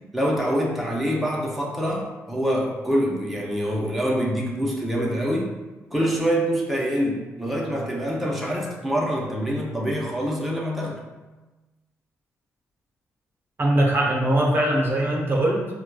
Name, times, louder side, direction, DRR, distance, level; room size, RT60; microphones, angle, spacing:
voice 1, 0.1-5.5 5.9-11.0, equal, ahead, -3 dB, 0.7 m, -25 dB
voice 2, 13.6-15.7, right 1 dB, 40° right, -1 dB, 0.6 m, -21 dB
4.5 x 2.2 x 2.2 m, 1.1 s
cardioid pair, 70°, 6 cm